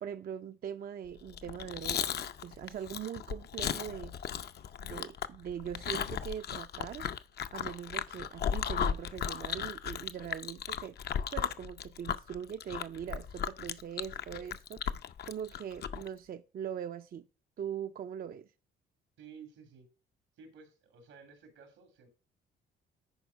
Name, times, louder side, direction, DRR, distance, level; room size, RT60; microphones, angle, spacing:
voice 1, 0.0-4.2 4.8-7.0 7.5-11.0 11.3-14.8 15.3-17.3 17.6-18.5, right 9 dB, 50° right, 0.5 m, -41 dB
Chewing mastication, 1.3-16.1, left 8 dB, 55° left, 0.6 m, -36 dB
voice 2, 19.2-19.9 20.4-22.1, right 6 dB, 90° right, 2.7 m, -53 dB
10.5 x 4.4 x 4.7 m
cardioid pair, 90°, 20 cm